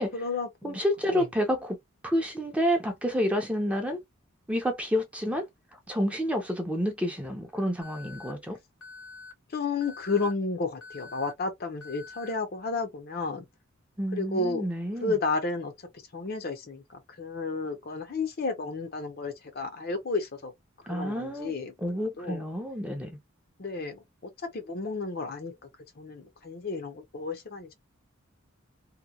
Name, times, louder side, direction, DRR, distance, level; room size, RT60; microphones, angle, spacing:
voice 1, 0.1-0.8 1.1-1.3 9.5-13.5 14.1-14.6 15.0-15.7 16.1-20.5 20.8-22.4 23.6-25.7 26.0-27.7, left 3 dB, 45° left, 0.6 m, -32 dB
voice 2, 0.6-1.8 2.0-4.0 4.5-5.4 5.9-8.6 14.0-15.2 20.9-21.5 21.8-23.1, equal, 5° right, 0.6 m, -29 dB
Alarm, 7.8-8.3 8.8-9.3 9.8-10.3 10.8-11.3 11.8-12.3, left 4 dB, 80° left, 1.4 m, -46 dB
2.8 x 2.3 x 2.3 m
head